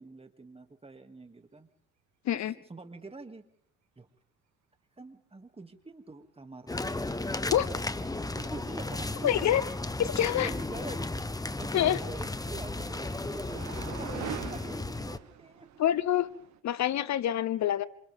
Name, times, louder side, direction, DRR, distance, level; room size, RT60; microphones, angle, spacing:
voice 1, 0.0-1.7 2.3-3.4 4.0-4.1 5.0-6.8 8.3-9.4 10.3-14.2 14.5-15.7, right 3 dB, 20° right, 7 dB, 2.6 m, -46 dB
sound 1, 6.7-15.2, left 2 dB, 10° left, 1.2 m, -34 dB
voice 2, 9.2-9.6 10.0-10.5 11.7-12.0 15.8-16.3 16.6-17.9, left 11 dB, 65° left, 16 dB, 1.0 m, -26 dB
sound 2, 11.4-16.6, right 9 dB, 65° right, 1.8 m, -44 dB
27.5 x 27.5 x 3.7 m, 0.64 s
cardioid pair, 90°, 30 cm